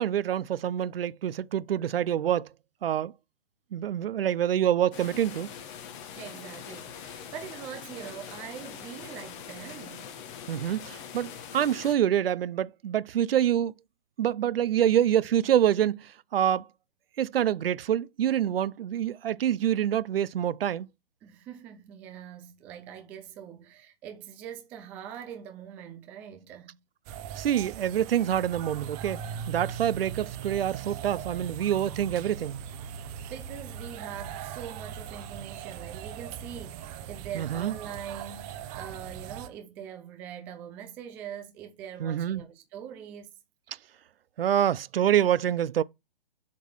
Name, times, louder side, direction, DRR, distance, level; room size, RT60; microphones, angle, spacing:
voice 1, 0.0-2.5 2.8-3.1 3.7-5.5 10.5-13.7 14.2-16.7 17.2-20.9 27.3-29.2 29.5-32.6 37.3-37.7 42.0-42.4 44.4-45.8, right 10 dB, 70° right, 0.5 m, -26 dB
sound 1, 4.9-11.9, left 8 dB, 30° left, 1.1 m, -43 dB
voice 2, 6.1-10.1 21.2-26.8 33.2-43.3, right 9 dB, 5° right, 0.3 m, -43 dB
sound 2, 27.0-39.5, right 8 dB, 25° right, 0.8 m, -40 dB
7.4 x 3.8 x 6.1 m
hypercardioid pair, 140°, 30 cm